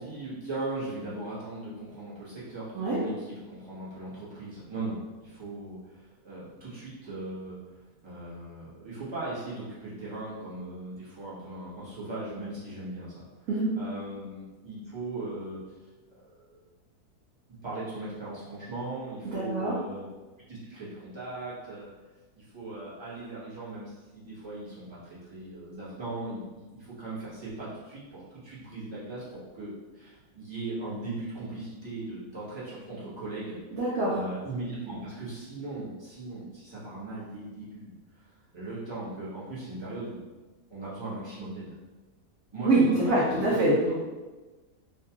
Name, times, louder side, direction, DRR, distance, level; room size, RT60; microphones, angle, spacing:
voice 1, 0.0-7.6 8.0-13.3 13.7-15.6 16.2-16.6 17.6-20.1 20.5-21.9 22.3-25.0 25.3-33.6 34.1-37.9 38.5-40.2 40.7-41.7 42.5-43.6, right 2 dB, 20° right, -10 dB, 0.9 m, -38 dB
voice 2, 19.2-19.7 33.7-34.1 42.6-43.9, right 2 dB, 65° right, -7 dB, 1.0 m, -24 dB
3.3 x 2.3 x 2.8 m, 1.2 s
omnidirectional pair, 1.7 m